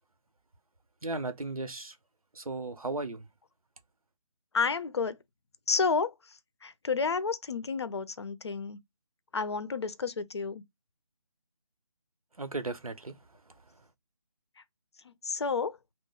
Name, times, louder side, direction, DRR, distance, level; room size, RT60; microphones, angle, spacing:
voice 1, 1.0-1.9 2.3-3.3 12.4-13.2, right 3 dB, 85° right, 0.8 m, -35 dB
voice 2, 4.5-5.2 5.7-6.1 6.6-8.8 9.3-10.6 15.0-15.8, left 5 dB, 50° left, 0.5 m, -30 dB
2.9 x 2.0 x 3.9 m
figure-of-eight pair, 155°, 18 cm